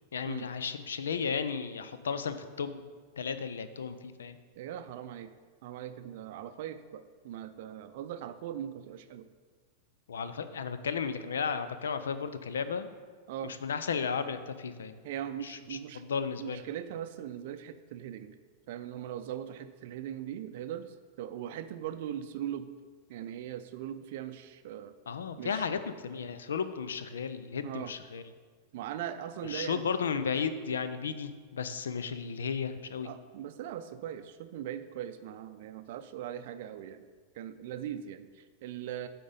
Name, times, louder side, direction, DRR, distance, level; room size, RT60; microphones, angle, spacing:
voice 1, 0.1-2.9 3.2-4.4 10.1-12.9 13.4-15.0 15.4-16.6 25.1-28.2 29.4-33.1, left 6 dB, 70° left, 11 dB, 0.5 m, -34 dB
voice 2, 4.6-5.3 5.6-9.3 13.3-13.6 15.0-16.0 16.4-18.4 18.7-22.7 23.1-24.9 25.4-25.7 27.6-27.9 28.7-29.8 33.0-37.0 37.4-39.1, right 10 dB, 55° right, 10 dB, 0.5 m, -40 dB
8.5 x 3.8 x 5.4 m, 1.5 s
figure-of-eight pair, 90°, 0 cm